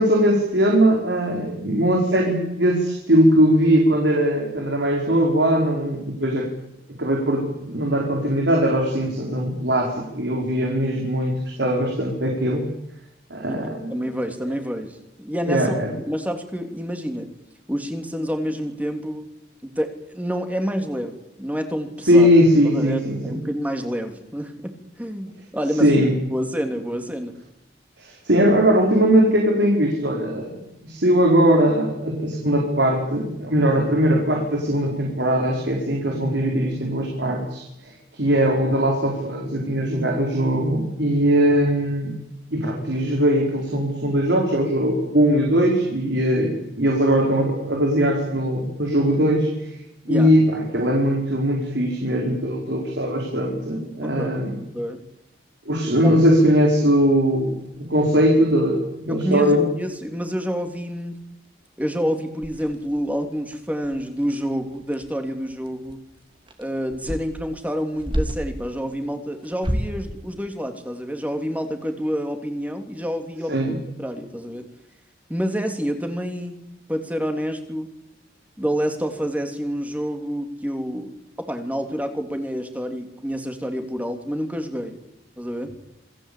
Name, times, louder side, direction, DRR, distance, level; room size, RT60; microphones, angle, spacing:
voice 1, 0.0-6.5 6.9-12.7 13.3-13.9 15.5-15.9 22.1-23.4 25.8-26.1 28.0-42.1 42.5-49.8 50.1-54.6 55.7-59.7 73.5-73.8, equal, 80° right, 0 dB, 4.8 m, -20 dB
voice 2, 13.5-15.7 16.1-17.3 17.7-19.3 19.6-22.3 22.6-27.3 50.1-50.4 54.0-54.4 54.7-55.0 56.0-56.1 59.1-61.1 61.8-66.0 66.6-74.7 75.3-76.5 76.9-77.9 78.6-81.1 81.5-84.9 85.4-85.7, equal, 10° right, 5 dB, 3.3 m, -28 dB
sound 1, 57.6-59.1 59.6-59.7 59.9-60.2 60.5-60.6 61.0-61.5 61.8-61.9 62.4-68.6 69.4-70.1, equal, 30° right, 2.8 m, -32 dB
27.5 x 20.0 x 8.7 m, 0.86 s
head